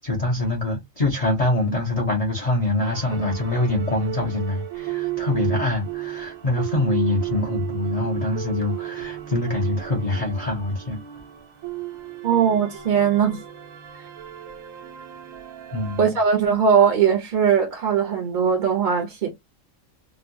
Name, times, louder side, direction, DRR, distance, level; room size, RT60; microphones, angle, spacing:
voice 1, 0.0-11.0 15.7-16.1, left 2 dB, 45° left, 0.5 m, -24 dB
sound 1, 2.8-16.0, right 14 dB, 85° right, 1.2 m, -34 dB
voice 2, 12.2-13.4 16.0-19.3, right 7 dB, 50° right, 0.7 m, -20 dB
2.9 x 2.2 x 2.6 m
omnidirectional pair, 1.4 m